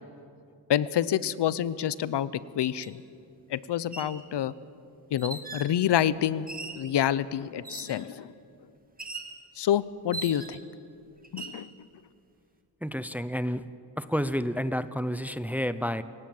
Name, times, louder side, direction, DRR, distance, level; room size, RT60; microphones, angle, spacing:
voice 1, 0.7-3.0 3.5-4.5 5.1-6.5 6.7-8.3 9.6-10.6 11.3-11.7, left 10 dB, 75° left, 18 dB, 0.8 m, -27 dB
sound 1, 2.8-2.9 3.8-4.2 5.2-5.7 6.5-6.9 7.6-8.1 9.0-9.4 10.1-10.7 11.2-11.6, right 3 dB, 20° right, 1.9 m, -39 dB
voice 2, 12.8-13.6 14.0-16.0, equal, 5° right, 13 dB, 0.6 m, -30 dB
28.0 x 17.0 x 7.7 m, 2.5 s
wide cardioid pair, 135°, 42 cm